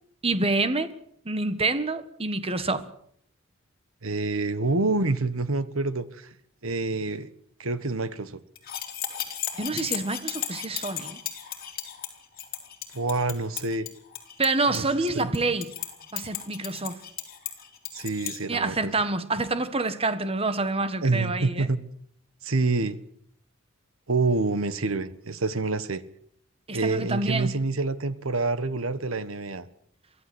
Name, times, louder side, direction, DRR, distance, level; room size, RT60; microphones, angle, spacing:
voice 1, 0.2-0.9 1.2-2.8 9.6-11.2 14.4-15.7 16.1-17.0 18.5-21.7 26.7-27.6, right 3 dB, 30° right, 1.5 m, -27 dB
voice 2, 4.0-6.3 6.6-7.3 7.6-8.4 12.9-13.9 14.7-14.8 15.1-15.3 17.9-18.9 21.0-21.8 22.4-23.0 24.1-26.0 26.7-29.7, right 3 dB, 80° right, 1.4 m, -27 dB
sound 1, 8.6-18.4, left 10 dB, 45° left, 3.7 m, -35 dB
23.5 x 14.5 x 8.0 m
head